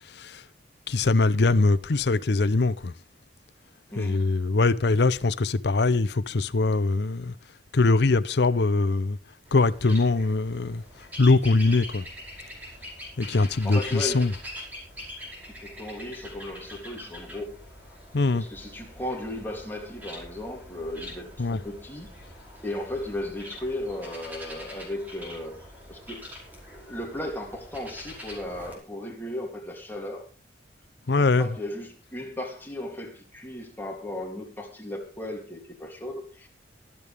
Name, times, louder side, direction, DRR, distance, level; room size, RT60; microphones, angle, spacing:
voice 1, 0.1-0.4 0.9-2.9 4.0-7.3 7.7-9.2 9.5-10.8 11.2-12.1 13.2-14.3 18.1-18.4 21.4-21.6 31.1-31.5, left 3 dB, 65° left, 0.6 m, -22 dB
voice 2, 3.9-4.3 13.4-14.3 15.5-17.6 18.3-22.1 22.6-26.2 26.7-30.3 31.2-36.5, left 1 dB, 10° left, 2.8 m, -36 dB
sound 1, 9.5-28.8, left 1 dB, 10° right, 5.2 m, -43 dB
23.0 x 8.4 x 3.5 m
head